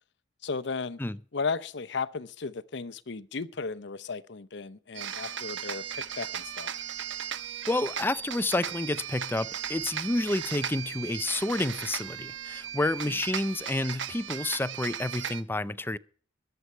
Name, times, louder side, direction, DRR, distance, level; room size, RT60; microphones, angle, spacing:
voice 1, 0.4-1.0 1.3-6.7 13.0-13.2, left 4 dB, 65° left, 0.8 m, -35 dB
sound 1, 4.9-15.4, right 8 dB, 75° right, 1.0 m, -37 dB
voice 2, 7.7-16.0, left 2 dB, 10° left, 0.5 m, -29 dB
21.0 x 7.9 x 4.4 m
head